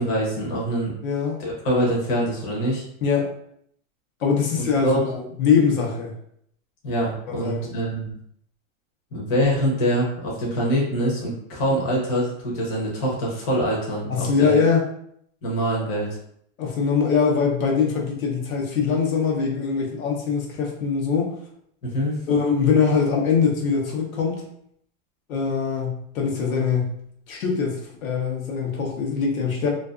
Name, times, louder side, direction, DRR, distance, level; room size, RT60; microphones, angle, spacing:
voice 1, 0.0-0.9 1.4-2.8 4.8-5.0 6.8-8.1 9.1-14.6 15.4-16.1 21.8-22.1, equal, 30° left, -4 dB, 0.7 m, -24 dB
voice 2, 1.0-1.4 3.0-3.3 4.2-6.1 7.4-7.7 14.1-14.8 16.6-21.3 22.3-24.4 25.3-26.9 27.3-29.7, left 5 dB, 85° left, 0 dB, 0.8 m, -22 dB
2.5 x 2.3 x 2.4 m, 0.69 s
supercardioid pair, 160°, 40 cm